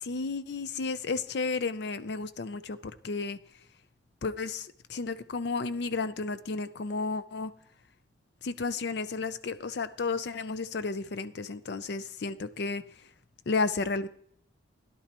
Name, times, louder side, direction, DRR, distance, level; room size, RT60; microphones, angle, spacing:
voice 1, 0.0-3.4 4.2-7.5 8.4-12.8 13.5-14.1, left 4 dB, 60° left, 0.5 m, -32 dB
16.0 x 11.0 x 3.0 m
head